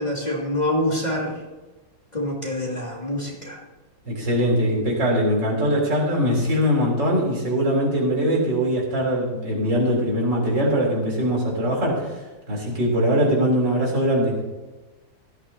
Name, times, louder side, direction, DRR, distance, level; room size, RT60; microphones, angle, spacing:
voice 1, 0.0-1.4 2.1-3.6, left 1 dB, 20° left, -3 dB, 2.7 m, -26 dB
voice 2, 4.1-12.1 12.5-14.4, equal, 75° right, -3 dB, 4.5 m, -21 dB
17.5 x 13.0 x 2.9 m, 1.2 s
omnidirectional pair, 2.0 m